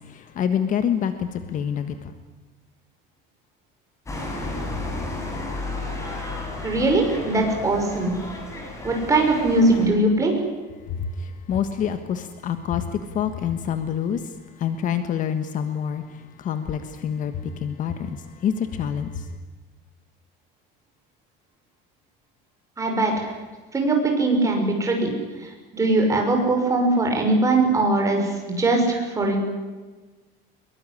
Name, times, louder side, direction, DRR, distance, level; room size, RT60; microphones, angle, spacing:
voice 1, 0.4-1.9 11.5-12.8 13.1-14.2 14.6-16.0 16.4-17.3 17.6-18.2 18.4-19.1, left 8 dB, 40° left, 10 dB, 1.4 m, -26 dB
sound 1, 4.1-9.9, left 2 dB, 15° left, 6.6 m, -32 dB
voice 2, 6.6-8.1 8.8-10.3 22.8-23.3 23.7-25.1 25.4-29.4, right 2 dB, 15° right, 2 dB, 6.0 m, -21 dB
24.0 x 22.5 x 9.9 m, 1.3 s
cardioid pair, 175°, 21 cm